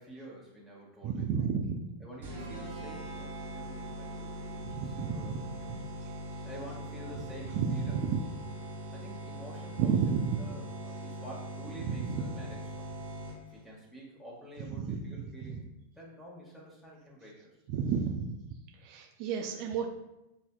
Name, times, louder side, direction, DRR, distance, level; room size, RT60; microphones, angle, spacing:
voice 1, 0.0-1.4 2.0-5.8 6.4-8.4 8.9-12.9 13.5-17.6, equal, 5° left, -4 dB, 1.5 m, -49 dB
voice 2, 1.0-1.8 4.7-5.3 7.5-8.2 9.8-10.4 11.9-12.2 14.8-15.0 15.4-15.6 17.7-18.4 18.8-19.9, right 6 dB, 45° right, 2 dB, 0.4 m, -31 dB
sound 1, 2.2-13.6, right 1 dB, 65° right, 1.5 m, -41 dB
7.2 x 2.7 x 2.2 m, 0.91 s
figure-of-eight pair, 90°, 0 cm